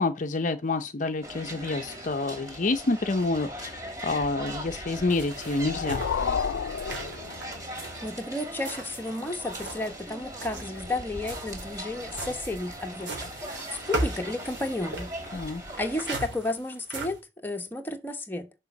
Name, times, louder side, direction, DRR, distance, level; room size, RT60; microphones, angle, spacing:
voice 1, 0.0-3.8 4.0-6.0 15.3-15.6, left 3 dB, 45° left, 0.6 m, -28 dB
sound 1, 1.2-16.1, equal, 20° right, 2.8 m, -40 dB
sound 2, 5.1-9.9 10.3-17.2, right 1 dB, 70° right, 3.2 m, -38 dB
sound 3, 5.3-7.9, left 6 dB, 90° left, 0.4 m, -31 dB
voice 2, 8.0-13.3 13.9-15.1 15.8-18.5, left 2 dB, 10° left, 1.1 m, -32 dB
6.7 x 5.2 x 5.9 m
head